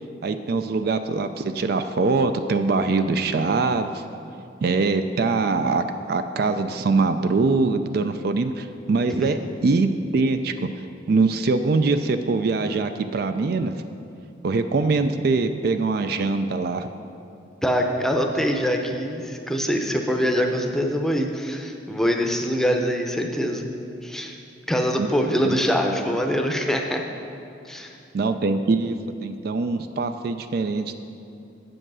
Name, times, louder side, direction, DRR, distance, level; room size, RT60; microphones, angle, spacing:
voice 1, 0.2-4.0 4.6-10.5 11.1-13.7 14.4-16.9 25.0-25.1 25.4-25.6 28.1-29.0 29.2-31.0, right 3 dB, 55° right, 9 dB, 0.4 m, -23 dB
voice 2, 17.6-23.7 24.0-24.4 24.7-27.0 27.7-28.0, equal, ahead, 2 dB, 0.6 m, -24 dB
7.8 x 7.5 x 6.1 m, 2.6 s
head